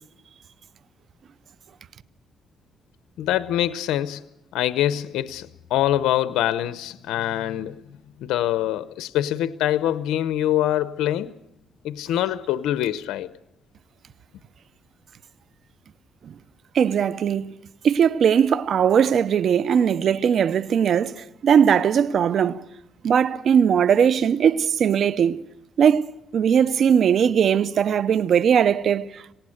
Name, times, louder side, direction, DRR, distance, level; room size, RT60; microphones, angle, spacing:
voice 1, 3.2-4.2 4.5-7.8 8.2-11.3 11.8-13.3, left 12 dB, 90° left, 0.7 m, -24 dB
voice 2, 16.7-17.5 17.8-22.6 23.0-25.4 25.8-26.1 26.3-29.3, right 8 dB, 60° right, 0.7 m, -19 dB
27.0 x 18.0 x 6.5 m
cardioid pair, 90°, 0 cm